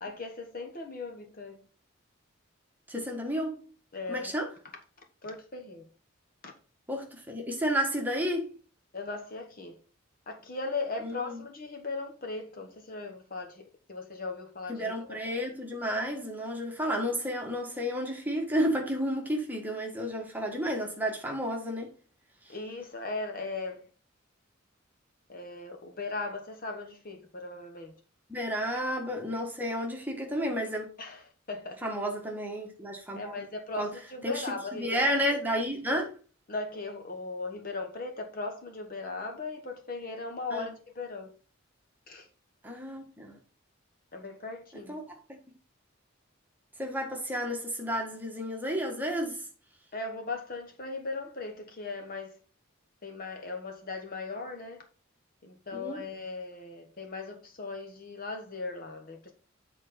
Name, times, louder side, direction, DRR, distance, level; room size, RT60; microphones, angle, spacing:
voice 1, 0.0-1.6 3.9-4.3 5.2-5.9 6.4-6.5 8.9-9.8 10.3-15.2 22.5-23.9 25.3-27.9 28.7-28.8 31.0-31.8 33.1-35.3 36.5-41.3 42.1-42.3 44.1-45.0 49.9-52.4 53.0-54.8 55.4-59.3, left 3 dB, 40° left, 1.1 m, -38 dB
voice 2, 2.9-3.6 4.1-4.5 6.9-8.5 11.0-11.4 14.7-21.9 28.3-30.9 31.8-33.2 33.8-33.9 34.2-34.5 34.7-36.1 40.5-40.7 42.6-43.4 44.9-45.0 46.8-49.4 55.8-56.0, equal, 10° right, 1.5 m, -31 dB
8.1 x 4.2 x 5.1 m
head